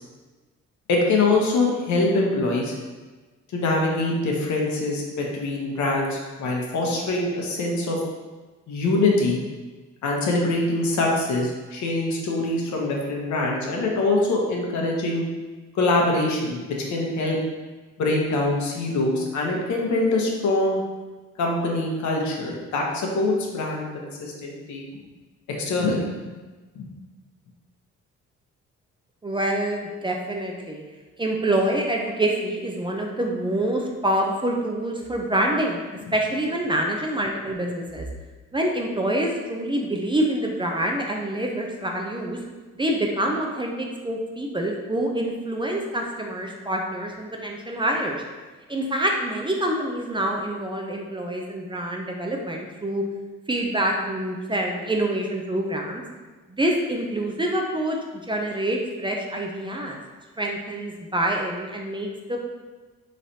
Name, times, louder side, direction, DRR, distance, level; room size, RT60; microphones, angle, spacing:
voice 1, 0.9-2.7 3.5-8.0 8.7-9.4 10.0-15.2 15.7-17.4 18.0-20.8 21.4-24.9 25.6-26.3 26.8-26.9, left 2 dB, 70° left, -1 dB, 0.9 m, -24 dB
voice 2, 29.2-30.8 31.2-35.8 36.1-38.1 38.5-42.4 42.8-48.2 48.7-53.0 53.5-56.0 56.5-58.0 58.3-60.0 60.4-62.4, right 1 dB, 15° right, 0 dB, 0.4 m, -26 dB
4.0 x 3.2 x 2.7 m, 1.3 s
cardioid pair, 90°, 30 cm